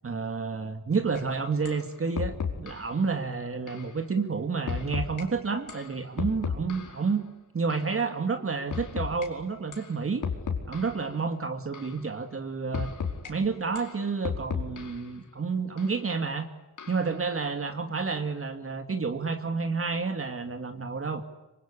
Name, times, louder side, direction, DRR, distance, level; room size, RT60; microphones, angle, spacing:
voice 1, 0.0-7.2 7.5-10.2 10.7-12.9 13.3-16.5 16.9-21.2, right 4 dB, 45° right, 6 dB, 2.4 m, -30 dB
sound 1, 1.2-1.3 1.7-1.8 2.2-2.9 3.7-3.9 4.7-5.2 5.7-7.1 7.7-7.9 8.7-9.3 9.7-9.9 10.2-11.1 11.7-12.0 12.7-13.3 13.8-15.1 15.8-15.9 16.8-17.2, left 6 dB, 75° left, 5.1 m, -34 dB
26.0 x 25.5 x 8.6 m, 1.1 s
wide cardioid pair, 100°, 31 cm